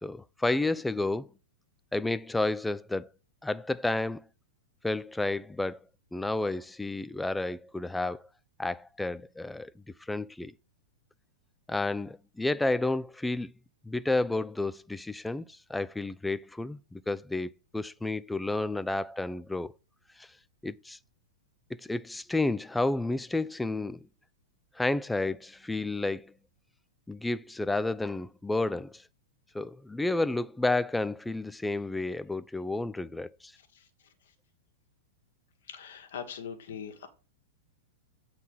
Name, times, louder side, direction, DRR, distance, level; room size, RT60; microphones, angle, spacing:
voice 1, 0.0-1.3 1.9-3.1 3.4-4.2 4.8-5.8 6.1-8.2 8.6-9.7 10.0-10.5 11.7-13.5 13.8-19.7 20.2-20.3 20.6-21.0 21.8-24.0 24.8-26.3 27.1-29.0 29.5-33.5, left 2 dB, 5° left, 0.3 m, -31 dB
voice 2, 35.7-37.1, left 7 dB, 65° left, 1.5 m, -41 dB
8.3 x 4.0 x 5.4 m
figure-of-eight pair, 100°, 0 cm